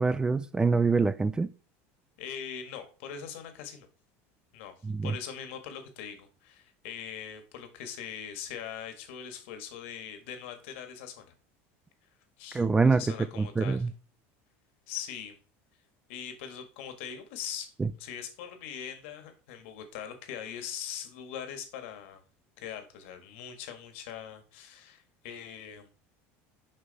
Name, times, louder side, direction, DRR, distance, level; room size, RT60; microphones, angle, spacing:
voice 1, 0.0-1.5 4.8-5.1 12.5-13.0 13.4-13.9 17.8-17.9, right 4 dB, 10° right, 0.3 m, -25 dB
voice 2, 2.2-3.9 4.5-4.7 5.0-11.3 12.4-12.6 12.9-13.8 14.9-15.4 16.1-17.7 18.0-22.2 22.6-25.9, left 8 dB, 80° left, 1.7 m, -41 dB
6.6 x 5.5 x 4.1 m
supercardioid pair, 140°, 6 cm